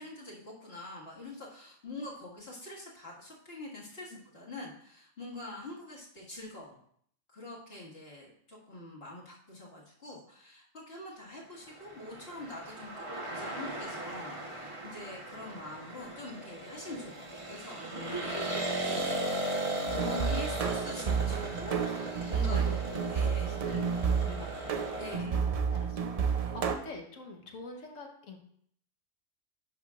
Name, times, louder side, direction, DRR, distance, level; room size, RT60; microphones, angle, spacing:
voice 1, 0.0-6.8 7.3-18.4 18.8-19.1 19.9-22.8 23.1-23.6 25.0-25.4 26.4-26.6, left 2 dB, 50° left, -5 dB, 2.1 m, -45 dB
sound 1, 11.7-25.2, right 1 dB, 25° right, 1.0 m, -37 dB
voice 2, 18.0-18.8 21.8-24.8 25.1-28.4, left 3 dB, 80° left, 2 dB, 1.5 m, -47 dB
sound 2, 19.9-26.7, right 6 dB, 55° right, 0.4 m, -31 dB
10.5 x 5.7 x 2.4 m, 0.64 s
omnidirectional pair, 1.3 m